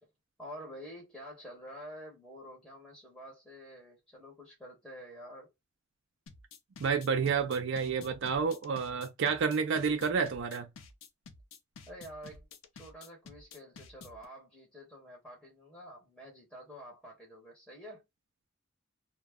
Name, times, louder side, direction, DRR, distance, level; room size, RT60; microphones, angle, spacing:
voice 1, 0.4-5.5 11.9-12.5 12.7-18.0, equal, ahead, 0.9 m, -48 dB
sound 1, 6.3-14.2, left 4 dB, 85° left, 0.5 m, -51 dB
voice 2, 6.8-10.7, right 6 dB, 65° right, 0.4 m, -30 dB
2.2 x 2.0 x 3.4 m
head